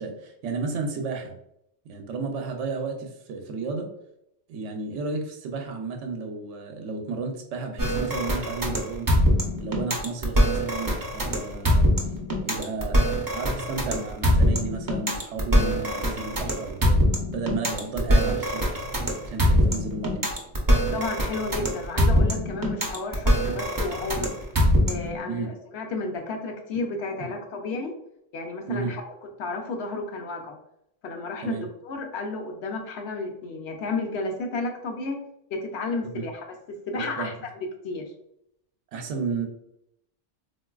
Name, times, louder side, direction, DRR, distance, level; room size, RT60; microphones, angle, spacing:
voice 1, 0.0-1.3 1.8-3.9 4.5-9.1 9.6-11.8 12.4-17.0 17.3-18.7 19.2-20.2 25.3-25.5 28.7-28.9 31.4-31.7 36.1-36.2 36.9-37.3 38.9-39.5, right 4 dB, 80° right, 3 dB, 0.9 m, -32 dB
sound 1, 7.8-25.2, equal, 30° right, 0.4 m, -23 dB
voice 2, 20.9-24.3 24.9-27.9 28.3-29.0 29.4-30.6 31.0-35.2 35.5-36.4 36.9-37.3 37.8-38.1, left 3 dB, 65° left, 3 dB, 0.8 m, -32 dB
3.8 x 2.5 x 2.3 m, 0.77 s
omnidirectional pair, 1.2 m